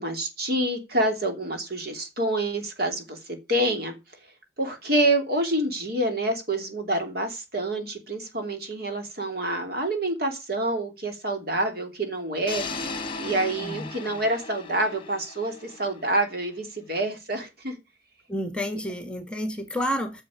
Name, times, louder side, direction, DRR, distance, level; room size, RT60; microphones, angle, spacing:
voice 1, 0.0-4.0 4.6-17.8, right 1 dB, 55° right, 4 dB, 3.0 m, -27 dB
sound 1, 12.5-16.5, left 3 dB, 30° left, 1.4 m, -37 dB
voice 2, 18.3-20.2, equal, 5° left, 7 dB, 1.6 m, -30 dB
10.0 x 6.7 x 7.2 m, 0.27 s
head